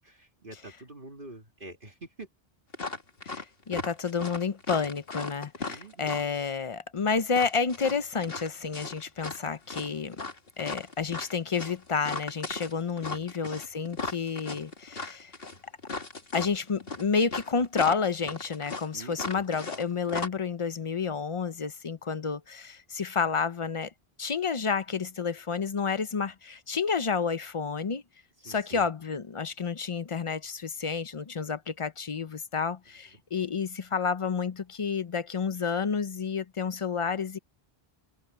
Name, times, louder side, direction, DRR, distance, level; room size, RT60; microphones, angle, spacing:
voice 1, 0.0-2.3 5.6-6.2 13.1-13.3 18.9-19.4 28.4-28.8, right 2 dB, 55° right, 2.4 m, -46 dB
sound 1, 2.7-3.4 3.7-6.4 7.3-9.4 9.7-19.8 20.1-20.3, left 3 dB, 65° left, 2.4 m, -37 dB
voice 2, 3.2-10.2 10.6-15.3 16.3-23.9 24.2-28.0 28.4-37.4, left 5 dB, 35° left, 0.6 m, -30 dB
omnidirectional pair, 1.1 m